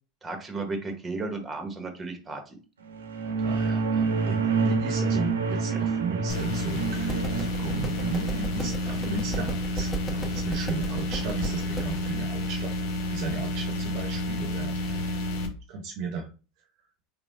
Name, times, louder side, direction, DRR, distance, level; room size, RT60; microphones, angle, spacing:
voice 1, 0.2-2.6 5.7-5.8, right 3 dB, 20° right, 5 dB, 1.0 m, -34 dB
sound 1, 2.9-9.5, right 4 dB, 90° right, 0.7 m, -28 dB
voice 2, 3.4-15.3 15.7-16.3, right 4 dB, 55° right, 4 dB, 0.8 m, -36 dB
sound 2, 6.3-15.5, left 1 dB, 65° left, 0.9 m, -30 dB
sound 3, 7.1-12.1, right 2 dB, 15° left, 1.1 m, -36 dB
3.4 x 3.3 x 2.5 m, 0.34 s
hypercardioid pair, 90°, 0 cm